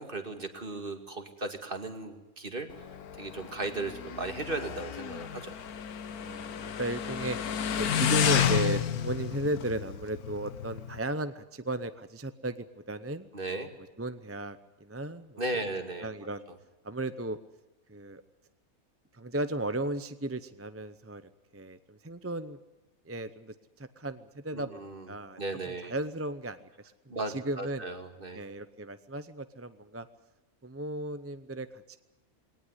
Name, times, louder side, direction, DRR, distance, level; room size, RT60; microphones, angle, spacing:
voice 1, 0.0-2.9 3.2-5.6 13.3-13.7 15.4-16.1 16.5-16.6 24.5-25.1 25.4-25.9 27.1-28.4, right 2 dB, 35° right, 6 dB, 2.5 m, -36 dB
Motorcycle, 2.7-11.0, left 9 dB, 80° left, 1.5 m, -31 dB
voice 2, 6.2-7.4 7.8-13.3 14.0-15.7 16.0-16.5 16.8-17.4 17.9-18.2 19.1-21.2 21.5-22.6 23.1-24.7 25.1-26.6 27.3-27.8 28.3-30.1 30.6-32.0, right 1 dB, 15° right, 12 dB, 0.5 m, -35 dB
21.0 x 18.5 x 9.8 m, 1.0 s
omnidirectional pair, 1.5 m